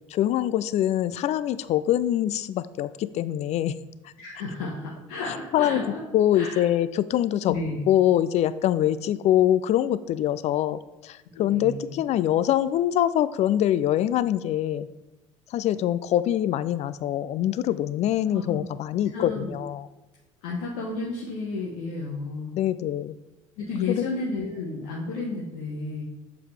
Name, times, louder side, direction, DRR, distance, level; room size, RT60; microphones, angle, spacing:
voice 1, 0.1-3.8 5.3-5.8 6.1-7.5 7.9-14.9 15.5-19.9 22.6-23.1 23.9-24.1, left 12 dB, 40° left, 15 dB, 0.4 m, -24 dB
voice 2, 4.2-6.0 6.3-6.7 7.5-7.8 11.3-12.0 18.3-18.6 19.1-19.5 20.4-22.5 23.6-26.0, left 3 dB, 65° left, -5 dB, 1.1 m, -32 dB
7.3 x 4.6 x 3.3 m, 1.0 s
hypercardioid pair, 65°, 17 cm